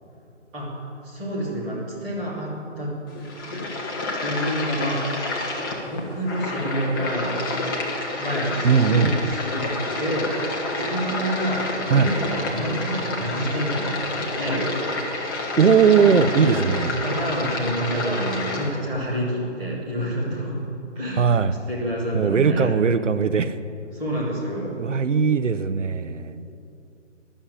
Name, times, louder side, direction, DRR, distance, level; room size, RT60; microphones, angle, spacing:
voice 1, 1.0-3.0 3.5-3.7 4.2-5.5 5.8-7.4 8.2-9.7 10.0-10.3 10.7-15.1 15.5-20.6 20.9-21.4 21.7-22.7 23.9-24.7, equal, 5° right, -9 dB, 0.6 m, -28 dB
sound 1, 3.1-18.7, left 2 dB, 20° left, 1.0 m, -29 dB
voice 2, 8.6-9.1 11.9-12.1 15.6-17.0 21.2-21.6 22.1-23.6 24.8-26.5, right 6 dB, 75° right, 13 dB, 0.7 m, -19 dB
11.5 x 7.3 x 8.6 m, 2.8 s
figure-of-eight pair, 150°, 37 cm